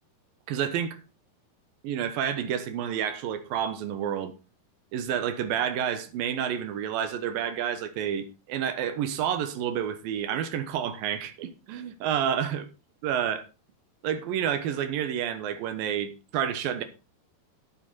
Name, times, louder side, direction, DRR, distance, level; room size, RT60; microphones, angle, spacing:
voice 1, 0.5-1.0 1.8-4.3 4.9-12.6 13.0-13.4 14.0-16.8, right 9 dB, 70° right, 2.7 m, -29 dB
12.0 x 8.3 x 4.1 m
omnidirectional pair, 4.6 m